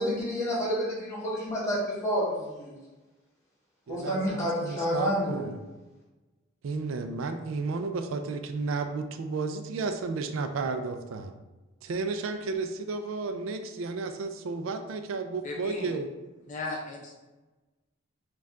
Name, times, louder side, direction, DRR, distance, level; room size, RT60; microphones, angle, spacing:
voice 1, 0.0-2.7 3.9-5.5, equal, 15° left, -6 dB, 1.4 m, -29 dB
voice 2, 3.9-5.6 6.6-11.3 11.8-16.1, right 4 dB, 75° right, 8 dB, 0.4 m, -33 dB
voice 3, 15.4-15.9 16.5-17.1, left 2 dB, 40° left, -1 dB, 0.5 m, -36 dB
4.4 x 2.3 x 3.6 m, 1.1 s
head